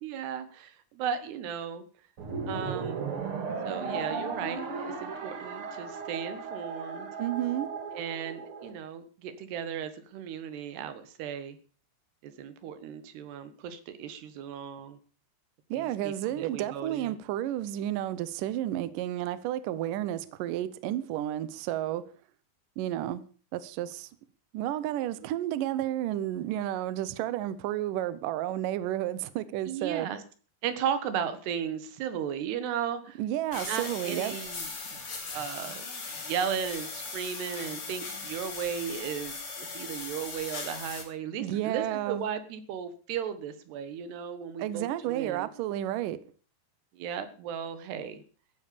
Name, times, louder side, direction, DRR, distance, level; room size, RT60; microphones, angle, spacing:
voice 1, 0.0-1.8 2.5-3.1 3.6-7.1 7.9-11.6 12.2-15.0 15.7-17.2 29.7-30.2 30.6-33.2 33.7-35.0 35.3-35.8 36.2-45.5 46.9-48.2, right 8 dB, 70° right, 3.4 m, -35 dB
sound 1, 2.2-8.7, right 5 dB, 45° right, 2.1 m, -36 dB
voice 2, 7.2-7.7 15.7-22.0 22.8-23.2 23.5-24.1 24.5-30.1 33.2-34.4 41.4-42.2 44.6-46.2, right 13 dB, 90° right, 1.8 m, -31 dB
sound 2, 33.5-41.0, left 4 dB, 35° left, 3.4 m, -39 dB
14.5 x 9.0 x 6.8 m
omnidirectional pair, 5.2 m